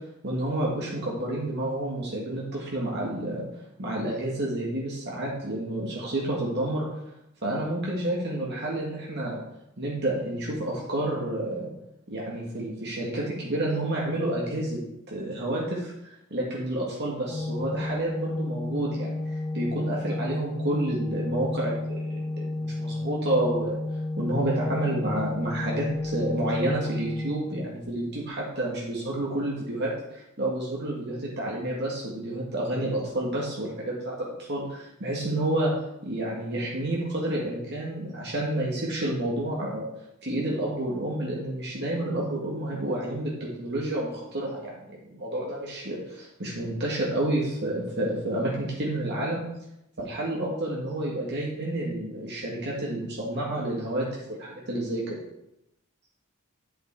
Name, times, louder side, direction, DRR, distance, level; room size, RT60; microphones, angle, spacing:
voice 1, 0.2-3.4 3.8-6.9 7.4-9.4 9.8-11.7 12.1-14.8 15.1-23.8 24.2-35.7 36.0-39.9 40.2-49.4 50.0-55.2, right 1 dB, 55° right, -4 dB, 1.8 m, -30 dB
Organ, 17.3-28.2, left 2 dB, 20° left, 0.3 m, -32 dB
9.1 x 6.9 x 4.6 m, 0.85 s
head